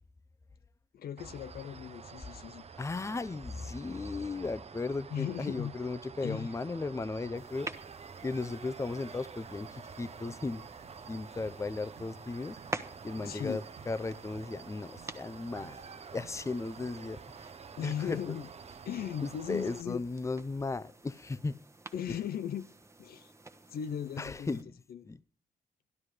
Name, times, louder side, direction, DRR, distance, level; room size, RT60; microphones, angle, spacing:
voice 1, 0.9-2.6 5.1-5.7 6.2-6.6 13.2-13.6 17.8-18.5 18.9-20.0 21.9-22.7 23.0-23.3 23.7-24.6 24.9-25.1, left 9 dB, 80° left, 0.5 m, -37 dB
sound 1, 1.2-19.8, right 6 dB, 40° right, 0.7 m, -49 dB
voice 2, 2.8-7.7 8.2-10.6 11.1-12.6 13.0-15.8 16.1-17.2 17.8-18.4 19.2-21.6 22.1-22.2 24.2-24.7 25.0-25.2, left 3 dB, 20° left, 0.5 m, -36 dB
sound 2, 7.3-24.6, right 2 dB, 20° right, 1.1 m, -49 dB
sound 3, 10.8-16.9, right 9 dB, 80° right, 0.6 m, -58 dB
12.5 x 12.0 x 4.8 m
cardioid pair, 90°, 16 cm